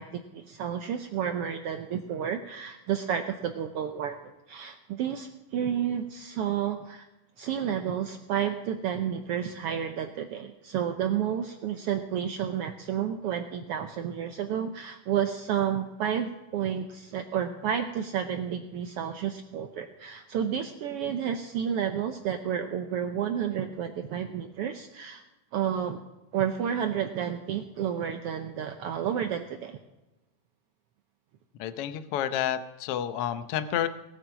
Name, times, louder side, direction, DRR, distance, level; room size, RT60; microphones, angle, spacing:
voice 1, 0.0-7.1 7.4-25.2 25.5-26.0 26.3-29.8, right 9 dB, 80° right, 7 dB, 1.3 m, -31 dB
voice 2, 31.6-33.9, left 10 dB, 80° left, 11 dB, 1.3 m, -30 dB
19.0 x 9.1 x 5.9 m, 1.0 s
omnidirectional pair, 3.6 m